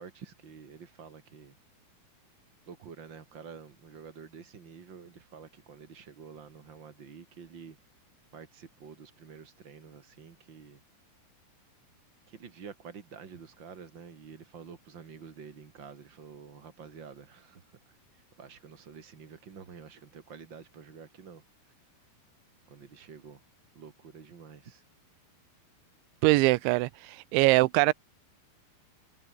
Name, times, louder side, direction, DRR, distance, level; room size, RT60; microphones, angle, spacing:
voice 1, 0.0-1.5 2.7-7.8 8.3-10.8 12.3-17.7 18.1-21.4 22.7-23.4 23.7-24.8, right 6 dB, 40° right, 1.7 m, -48 dB
voice 2, 26.2-27.9, right 22 dB, 85° right, 3.0 m, -23 dB
omnidirectional pair, 5.4 m